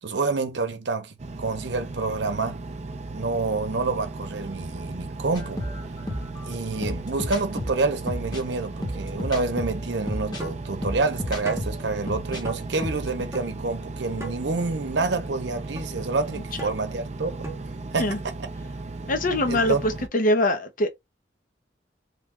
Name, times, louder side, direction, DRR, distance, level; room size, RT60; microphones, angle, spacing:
voice 1, 0.0-2.6 3.1-5.6 6.4-17.5 17.9-18.3 19.5-19.8, right 3 dB, 70° right, 0.8 m, -28 dB
Engine, 1.2-20.1, right 2 dB, 40° right, 0.5 m, -36 dB
sound 1, 5.3-12.4 12.7-13.2, equal, 25° left, 1.1 m, -33 dB
sound 2, 10.4-10.6 11.4-11.7 12.4-12.6 13.3-13.4 14.2-14.3 15.0-15.1 15.8-15.9 16.6-16.7 17.4-17.6, right 2 dB, 15° right, 0.9 m, -35 dB
voice 2, 19.1-20.9, left 1 dB, 50° left, 0.8 m, -23 dB
3.3 x 2.3 x 3.6 m
head